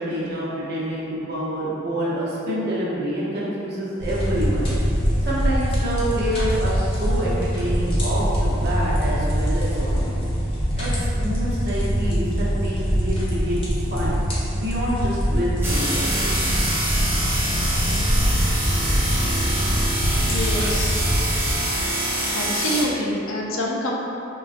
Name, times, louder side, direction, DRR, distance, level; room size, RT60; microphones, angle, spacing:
voice 1, 0.0-4.7 5.2-10.1 10.8-13.6 13.9-14.2 14.5-17.3, equal, 55° right, -7 dB, 0.8 m, -27 dB
sound 1, 4.0-21.5, equal, 30° left, 0.7 m, -23 dB
sound 2, 15.6-22.8, right 1 dB, 10° right, 0.5 m, -25 dB
voice 2, 20.1-21.0 22.3-23.9, left 1 dB, 80° left, -2 dB, 0.5 m, -26 dB
3.7 x 2.3 x 2.4 m, 2.9 s
head